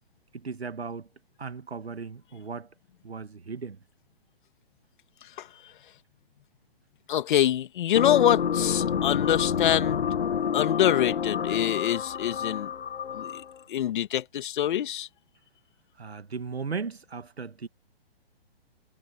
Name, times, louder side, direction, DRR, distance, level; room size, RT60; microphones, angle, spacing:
voice 1, 0.3-1.1 1.4-2.7 3.0-3.8 16.0-17.7, right 5 dB, 85° right, 1.9 m, -36 dB
voice 2, 7.1-10.1 10.5-12.7 13.1-13.4 13.7-15.1, left 11 dB, 55° left, 2.3 m, -25 dB
sound 1, 7.9-13.6, left 7 dB, 80° left, 1.2 m, -28 dB
hypercardioid pair, 130°, 31 cm